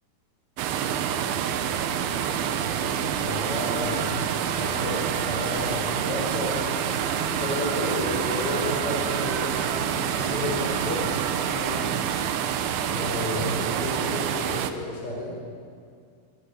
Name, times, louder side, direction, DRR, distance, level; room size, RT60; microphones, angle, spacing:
sound 1, 0.6-14.7, right 9 dB, 70° right, 2.6 m, -27 dB
sound 2, 1.8-12.5, right 4 dB, 50° right, 2.0 m, -37 dB
voice 1, 2.8-6.8 7.4-9.6 10.0-11.1 11.4-11.9 12.9-15.3, left 2 dB, 30° left, -1 dB, 5.6 m, -32 dB
24.0 x 20.0 x 8.5 m, 2.2 s
omnidirectional pair, 5.1 m